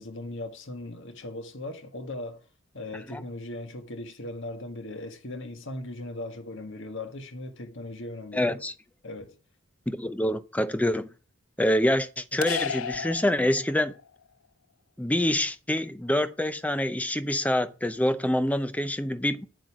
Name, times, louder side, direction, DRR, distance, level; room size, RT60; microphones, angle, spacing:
voice 1, 0.0-2.5 2.7-8.6 9.0-9.3, left 2 dB, 65° left, 1.6 m, -38 dB
voice 2, 8.3-8.7 9.9-11.1 11.6-13.9 15.0-19.5, left 1 dB, 5° left, 0.6 m, -26 dB
sound 1, 12.4-14.1, left 8 dB, 80° left, 0.5 m, -33 dB
8.1 x 7.8 x 4.9 m
head